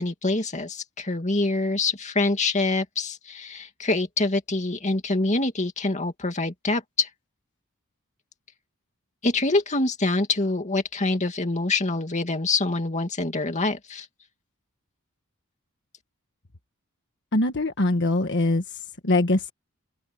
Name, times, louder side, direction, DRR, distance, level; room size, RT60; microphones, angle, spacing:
voice 1, 0.0-7.1 9.2-14.1, left 2 dB, 35° left, 2.4 m, -25 dB
voice 2, 17.3-18.6 19.0-19.5, left 2 dB, 55° left, 1.5 m, -22 dB
open air
head